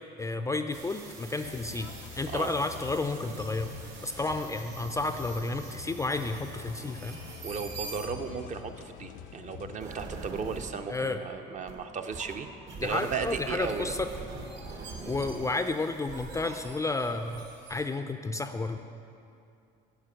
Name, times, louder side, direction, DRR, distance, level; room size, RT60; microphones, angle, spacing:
voice 1, 0.2-1.9 2.1-3.7 4.0-7.2 10.9-11.2 12.8-14.1 15.0-18.8, left 3 dB, 15° left, 8 dB, 0.3 m, -31 dB
sound 1, 0.7-8.4 9.8-10.7 11.7-11.8 12.1-17.8, right 3 dB, 70° right, 1.6 m, -44 dB
sound 2, 1.4-9.8, left 9 dB, 85° left, 0.5 m, -46 dB
voice 2, 7.4-12.5 12.8-13.9, right 5 dB, 40° right, 7 dB, 0.6 m, -35 dB
9.7 x 4.9 x 6.3 m, 2.5 s
cardioid pair, 100°, 19 cm